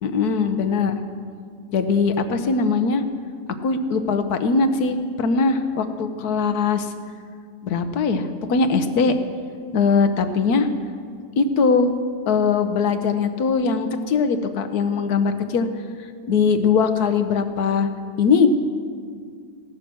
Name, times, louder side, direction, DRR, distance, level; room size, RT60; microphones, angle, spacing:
voice 1, 0.0-0.9 1.7-3.0 3.6-6.9 7.6-9.1 9.7-10.7 11.4-11.9 12.3-15.7 16.3-17.9 18.2-18.5, left 5 dB, 80° left, 9 dB, 1.5 m, -20 dB
16.5 x 11.5 x 6.2 m, 2.1 s
omnidirectional pair, 1.6 m